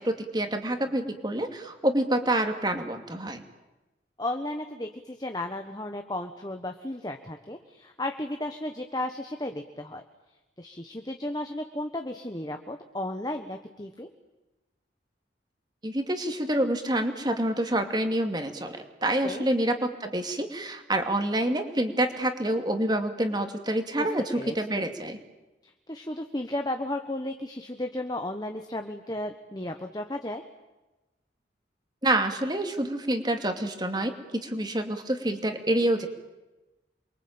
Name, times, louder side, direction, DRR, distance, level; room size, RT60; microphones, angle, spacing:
voice 1, 0.0-3.4 15.8-25.2 32.0-34.1 34.4-36.1, right 1 dB, 25° right, 6 dB, 2.6 m, -27 dB
voice 2, 4.2-10.0 10.6-14.1 19.2-19.5 24.0-24.1 24.3-24.9 25.9-30.4, left 1 dB, 20° left, 5 dB, 1.3 m, -34 dB
28.0 x 23.0 x 8.9 m, 1.1 s
head